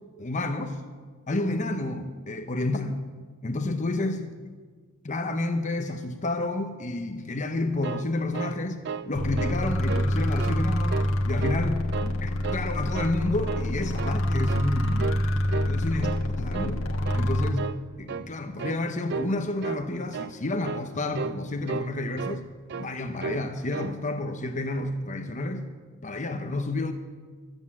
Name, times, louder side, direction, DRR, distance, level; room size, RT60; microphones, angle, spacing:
voice 1, 0.2-0.8 1.3-3.0 3.4-4.4 5.0-8.8 9.1-11.0 11.2-15.1 15.7-16.1 16.4-16.9 17.1-17.6 18.0-22.5 22.8-25.7 26.0-26.9, left 2 dB, 35° left, 6 dB, 0.8 m, -30 dB
sound 1, 7.6-9.1 9.4-9.6 9.9-10.6 10.9-11.6 11.9-12.7 12.9-13.2 13.5-14.2 14.5-14.7 15.0-15.3 15.5-16.3 16.5-16.8 17.0-17.3 17.6-17.8 18.1-18.3 18.6-18.8 19.1-19.3 19.6-19.8 20.1-20.3 20.6-20.9 21.1-21.4 21.7-22.4 22.7-22.9 23.2-23.5 23.7-24.0, right 5 dB, 55° right, 0.4 m, -34 dB
sound 2, 9.1-17.5, left 1 dB, 75° left, 1.5 m, -27 dB
13.5 x 8.1 x 8.6 m, 1.5 s
head